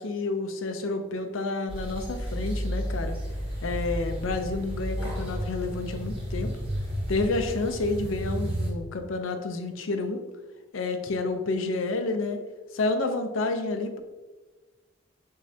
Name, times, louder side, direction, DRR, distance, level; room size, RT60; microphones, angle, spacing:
voice 1, 0.0-3.2 3.6-6.5 7.1-10.2 10.7-12.4 12.7-14.0, left 3 dB, 85° left, 7 dB, 0.6 m, -29 dB
sound 1, 1.7-8.7, equal, 25° right, 1.1 m, -32 dB
6.1 x 3.2 x 2.7 m, 1.2 s
head